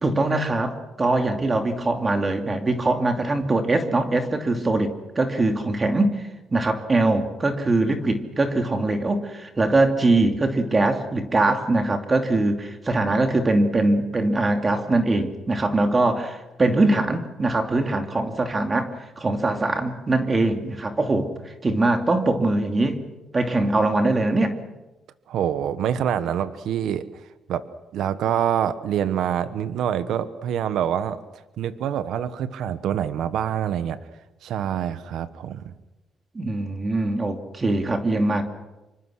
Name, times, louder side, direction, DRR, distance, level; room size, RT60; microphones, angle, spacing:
voice 1, 0.0-6.2 6.5-23.0 23.3-24.6 36.3-38.4, right 2 dB, 30° right, 5 dB, 2.7 m, -22 dB
voice 2, 25.3-27.0 27.5-27.6 27.9-31.2 31.6-34.0 34.4-35.7, right 9 dB, 80° right, 12 dB, 1.2 m, -26 dB
26.5 x 24.5 x 6.4 m, 1.0 s
cardioid pair, 90°, 0 cm